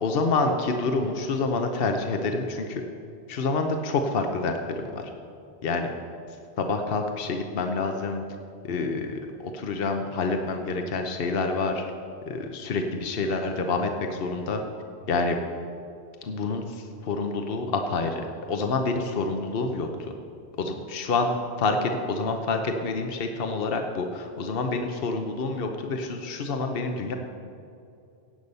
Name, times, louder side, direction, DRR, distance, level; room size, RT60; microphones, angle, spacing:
voice 1, 0.0-2.8 3.3-4.6 4.9-5.1 5.6-5.9 6.6-8.2 8.6-11.8 12.3-14.6 15.1-15.4 16.2-20.1 20.6-27.2, left 3 dB, 65° left, 4 dB, 1.1 m, -27 dB
16.0 x 8.4 x 5.5 m, 2.5 s
omnidirectional pair, 1.1 m